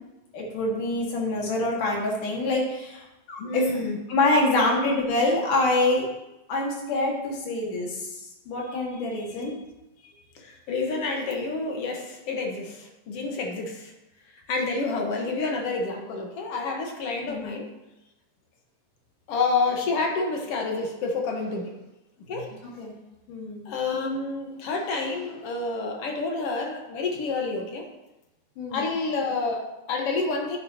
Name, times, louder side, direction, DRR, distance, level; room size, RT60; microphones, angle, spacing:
voice 1, 0.3-3.6 4.1-6.1 6.5-8.1 8.5-9.5 17.2-17.5 22.3-22.4 22.8-22.9 23.3-23.7 28.6-28.8, left 2 dB, 75° left, -2 dB, 3.4 m, -26 dB
voice 2, 3.4-4.0 4.5-4.8 10.4-13.9 14.5-17.7 19.3-21.7 22.3-22.5 23.7-27.9 28.7-30.6, left 3 dB, 55° left, 1 dB, 1.9 m, -29 dB
11.5 x 9.3 x 2.9 m, 0.97 s
omnidirectional pair, 3.8 m